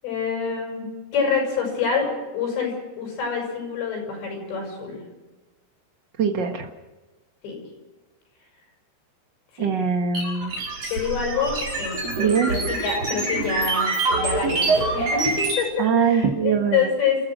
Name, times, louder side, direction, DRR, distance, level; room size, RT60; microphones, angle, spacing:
voice 1, 0.0-5.0 7.4-7.6 9.5-9.7 10.9-17.2, left 6 dB, 90° left, 1 dB, 9.1 m, -27 dB
voice 2, 6.2-6.7 9.6-10.6 12.2-12.5 15.8-16.9, right 6 dB, 80° right, 5 dB, 0.9 m, -22 dB
sound 1, 10.1-15.6, right 3 dB, 35° right, 6.8 m, -25 dB
28.5 x 14.5 x 6.3 m, 1.2 s
omnidirectional pair, 4.9 m